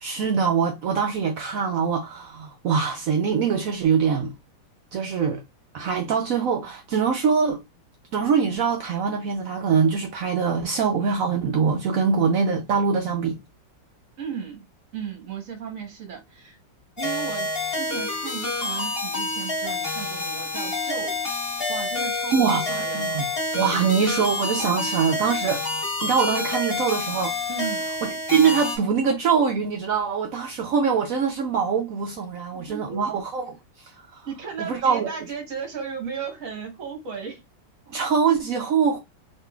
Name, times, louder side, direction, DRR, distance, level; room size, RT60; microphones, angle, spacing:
voice 1, 0.0-4.3 4.9-5.4 5.7-7.6 8.1-13.4 22.3-23.3 23.5-27.4 28.3-34.3 34.7-35.1 37.9-39.0, right 6 dB, 80° right, 0.7 m, -23 dB
voice 2, 14.2-14.6 14.9-16.6 17.0-21.2 21.7-23.1 27.5-27.9 32.5-33.0 34.2-37.4, right 6 dB, 55° right, 1.1 m, -35 dB
sound 1, 17.0-28.8, left 2 dB, 35° left, 1.5 m, -28 dB
3.7 x 3.1 x 2.2 m
omnidirectional pair, 2.1 m